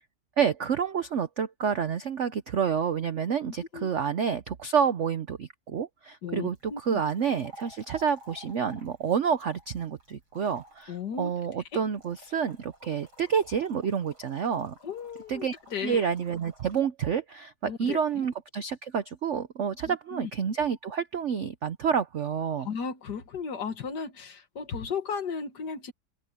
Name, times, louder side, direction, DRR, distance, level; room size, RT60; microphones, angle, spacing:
voice 1, 0.4-14.7 15.3-15.6 15.8-22.7, right 7 dB, 65° right, 0.7 m, -29 dB
voice 2, 6.2-7.0 10.9-11.3 11.7-11.8 14.8-15.5 15.7-16.0 17.6-18.0 19.9-20.3 22.6-25.9, left 6 dB, 55° left, 2.0 m, -35 dB
sound 1, 6.5-16.8, right 1 dB, 90° right, 8.5 m, -54 dB
open air
omnidirectional pair, 2.2 m